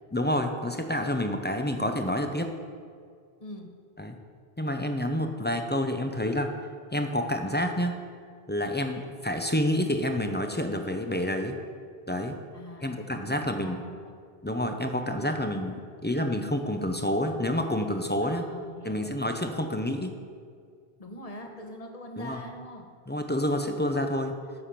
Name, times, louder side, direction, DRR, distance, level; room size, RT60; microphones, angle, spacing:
voice 1, 0.1-2.5 4.0-4.2 4.6-6.5 6.9-8.0 8.5-11.6 12.1-12.4 12.8-13.8 14.4-18.4 18.8-20.2 22.2-22.4 23.1-24.3, left 1 dB, 15° left, 5 dB, 0.4 m, -28 dB
voice 2, 3.4-3.7 12.5-14.2 18.2-19.4 21.0-22.9, left 1 dB, 35° left, 3 dB, 1.1 m, -43 dB
9.6 x 6.9 x 5.8 m, 2.1 s
omnidirectional pair, 1.1 m